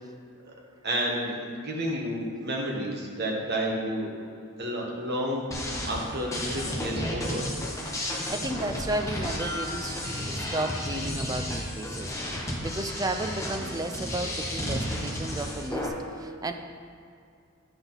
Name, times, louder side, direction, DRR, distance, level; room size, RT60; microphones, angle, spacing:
voice 1, 0.8-4.1 4.6-7.5, equal, 45° right, -1 dB, 1.3 m, -31 dB
sound 1, 5.5-15.9, left 1 dB, 15° left, 0.9 m, -32 dB
voice 2, 8.3-16.5, right 2 dB, 15° right, 7 dB, 0.3 m, -33 dB
9.7 x 6.0 x 3.9 m, 2.4 s
head